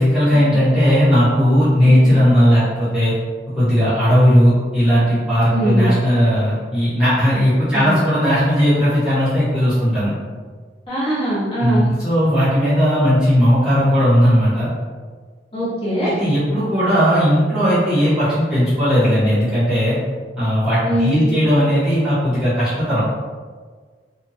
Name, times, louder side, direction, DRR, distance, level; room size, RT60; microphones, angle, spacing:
voice 1, 0.0-3.1 3.5-10.1 11.6-14.7 16.0-20.0 20.4-23.0, equal, 5° right, -13 dB, 1.2 m, -16 dB
voice 2, 5.5-5.9 7.7-7.9 10.9-11.9 15.5-16.1 20.8-21.3, equal, 30° left, -12 dB, 1.3 m, -22 dB
2.8 x 2.4 x 2.7 m, 1.5 s
head